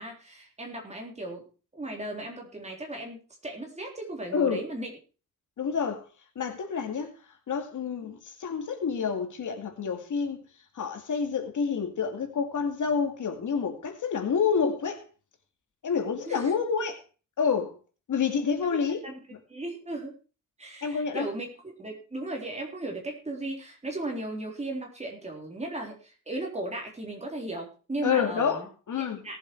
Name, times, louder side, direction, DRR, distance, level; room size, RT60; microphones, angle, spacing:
voice 1, 0.0-1.4 1.7-4.9 16.3-16.5 18.6-18.8 19.0-19.2 19.5-20.1 20.6-21.5 21.8-28.7 29.2-29.4, right 2 dB, 20° right, 1 dB, 3.7 m, -36 dB
voice 2, 4.3-4.6 5.6-6.0 6.4-7.2 7.5-10.4 10.7-15.0 15.8-17.0 17.4-17.8 18.1-19.0 20.8-21.3 28.0-29.4, left 6 dB, 70° left, 5 dB, 2.4 m, -28 dB
18.0 x 7.7 x 4.6 m, 0.36 s
wide cardioid pair, 155°, 31 cm